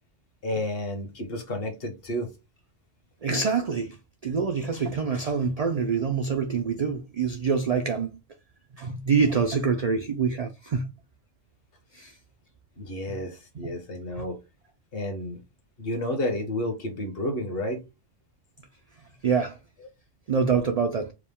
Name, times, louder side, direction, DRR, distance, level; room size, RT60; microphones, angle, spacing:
voice 1, 0.4-2.3 12.8-14.4 14.9-15.4 15.8-17.8, left 1 dB, 55° left, 1.3 m, -31 dB
voice 2, 3.2-4.0 4.2-8.2 8.7-10.9 11.9-12.1 13.1-13.2 14.1-14.2 19.2-19.6 20.3-21.1, right 5 dB, 60° right, 0.4 m, -26 dB
4.7 x 2.2 x 3.5 m
omnidirectional pair, 1.2 m